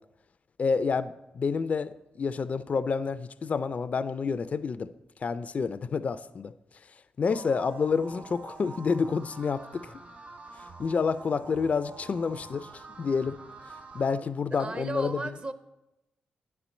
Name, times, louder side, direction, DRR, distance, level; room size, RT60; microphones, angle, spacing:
voice 1, 0.6-4.9 5.2-6.5 7.2-9.9 10.8-13.4 13.9-15.4, left 5 dB, 45° left, 13 dB, 0.4 m, -29 dB
sound 1, 7.3-14.1, right 3 dB, 60° right, 2.5 m, -47 dB
voice 2, 14.5-15.5, right 3 dB, 35° right, 11 dB, 0.7 m, -35 dB
9.5 x 4.3 x 7.0 m, 0.96 s
supercardioid pair, 55°, 3 cm